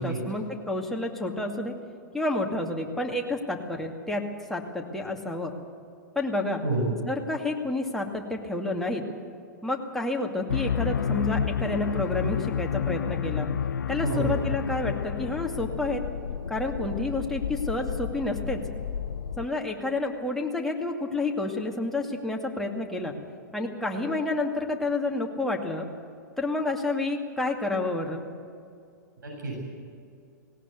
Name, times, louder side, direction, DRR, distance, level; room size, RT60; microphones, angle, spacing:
voice 1, 0.0-1.7 2.1-4.2 4.5-5.5 6.2-6.6 7.1-9.0 9.6-13.5 13.9-16.0 16.5-18.6 19.4-23.1 23.5-25.9 26.4-28.3, left 2 dB, 5° left, 0 dB, 2.3 m, -29 dB
voice 2, 6.6-6.9 14.0-14.3 23.9-24.0 29.2-29.6, right 2 dB, 75° right, -2 dB, 7.7 m, -29 dB
sound 1, 10.5-19.5, left 7 dB, 75° left, 0.6 m, -30 dB
18.5 x 18.0 x 8.4 m, 2.4 s
figure-of-eight pair, 110°, 10 cm